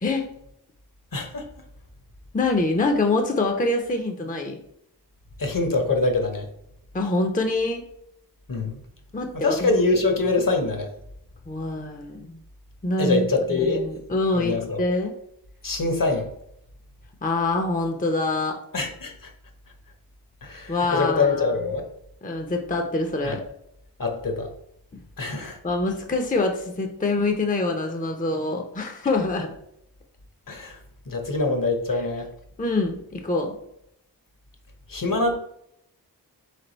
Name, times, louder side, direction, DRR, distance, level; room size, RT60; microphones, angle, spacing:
voice 1, 0.0-0.3 2.3-4.6 6.9-7.9 9.1-9.7 11.5-12.4 12.8-15.1 17.2-18.6 20.7-21.5 22.2-23.4 25.6-29.5 32.6-33.5, left 2 dB, 20° left, 3 dB, 0.6 m, -25 dB
voice 2, 1.1-1.5 5.4-6.5 8.5-8.8 9.3-10.9 13.0-13.8 14.3-14.8 15.6-16.3 18.7-19.3 20.4-21.9 23.2-23.4 24.0-24.5 25.2-25.6 30.5-30.8 31.1-32.3 34.9-35.4, left 3 dB, 50° left, 4 dB, 1.0 m, -24 dB
3.7 x 3.4 x 3.9 m, 0.75 s
wide cardioid pair, 45°, 41 cm